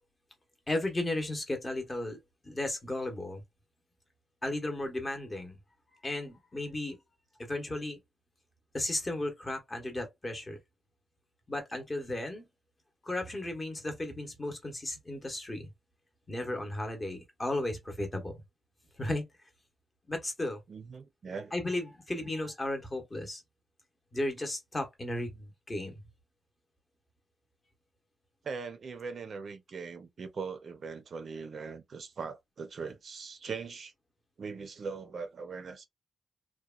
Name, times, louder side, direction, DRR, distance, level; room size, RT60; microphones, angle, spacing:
voice 1, 0.7-2.2 2.4-3.4 4.4-5.6 6.0-7.0 7.4-8.0 8.7-10.6 11.5-12.5 13.0-15.7 16.3-18.4 19.0-19.2 20.1-20.6 21.5-23.4 24.1-26.0, left 1 dB, 25° left, 0.8 m, -34 dB
voice 2, 20.7-21.5 28.4-33.9 34.4-35.9, right 5 dB, 50° right, 0.5 m, -40 dB
2.9 x 2.1 x 2.3 m
cardioid pair, 115°, 0 cm